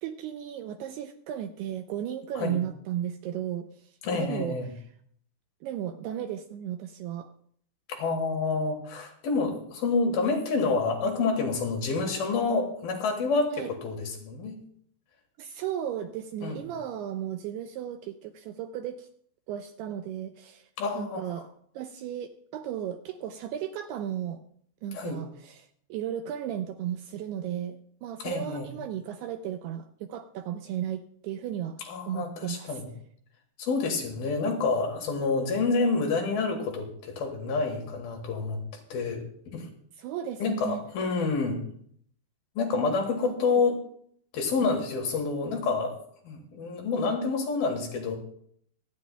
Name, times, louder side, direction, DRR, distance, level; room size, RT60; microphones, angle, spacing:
voice 1, 0.0-4.8 5.6-7.3 13.5-13.7 15.4-19.1 19.5-20.7 20.9-21.5 21.8-24.4 24.8-32.8 40.0-40.8 43.2-43.7 44.6-44.7, right 10 dB, 85° right, 7 dB, 2.4 m, -35 dB
voice 2, 4.0-4.7 7.9-14.6 16.4-16.6 20.8-21.3 24.9-25.2 28.2-28.7 31.8-32.9 33.6-38.6 38.9-39.7 40.4-41.6 42.6-43.8 44.3-46.0 46.2-48.2, left 4 dB, 65° left, 2 dB, 2.9 m, -28 dB
24.5 x 9.5 x 2.2 m, 0.63 s
omnidirectional pair, 5.1 m